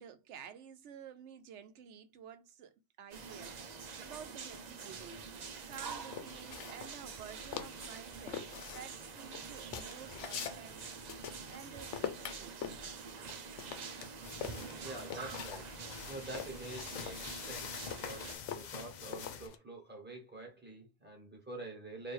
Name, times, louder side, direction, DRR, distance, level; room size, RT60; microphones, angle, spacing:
voice 1, 0.0-5.2 5.6-12.6 13.3-13.5, right 8 dB, 75° right, 0.9 m, -52 dB
sound 1, 3.1-18.4, right 5 dB, 45° right, 0.6 m, -46 dB
sound 2, 5.7-7.3 7.5-8.0 8.3-11.6 11.9-15.6 16.0-19.6, left 8 dB, 80° left, 1.0 m, -44 dB
sound 3, 14.2-19.5, left 7 dB, 60° left, 0.5 m, -46 dB
voice 2, 14.8-22.1, right 2 dB, 10° right, 1.4 m, -47 dB
3.1 x 2.7 x 4.4 m
omnidirectional pair, 1.2 m